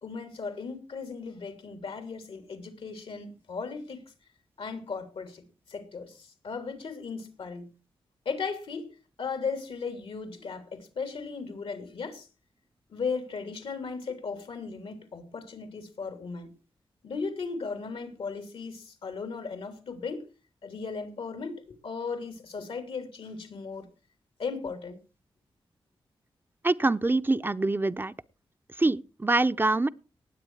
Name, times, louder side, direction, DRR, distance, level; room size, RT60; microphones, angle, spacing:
voice 1, 0.0-4.0 4.6-7.7 8.2-8.9 9.2-12.3 12.9-16.5 17.0-20.2 20.6-23.9 24.4-25.0, left 5 dB, 80° left, 3.0 m, -36 dB
voice 2, 26.6-28.1 28.8-29.9, right 2 dB, 20° right, 0.6 m, -25 dB
19.0 x 8.0 x 4.7 m
cardioid pair, 75°, 9 cm